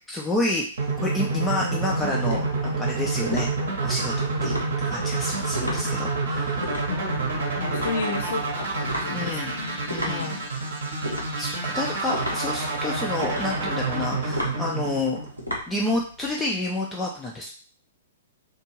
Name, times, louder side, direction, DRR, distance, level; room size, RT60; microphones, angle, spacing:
voice 1, 0.1-3.5 3.8-4.5 4.8-6.7 9.1-9.5 9.9-10.3 11.0-15.2 15.7-17.5, left 2 dB, 10° left, -3 dB, 0.4 m, -29 dB
sound 1, 0.8-16.3, left 1 dB, 85° left, 0.8 m, -36 dB
sound 2, 0.8-15.7, right 3 dB, 55° right, 0.8 m, -28 dB
voice 2, 6.9-10.5, left 4 dB, 55° left, 3 dB, 0.6 m, -33 dB
2.6 x 2.3 x 3.0 m, 0.41 s
figure-of-eight pair, 110°, 0 cm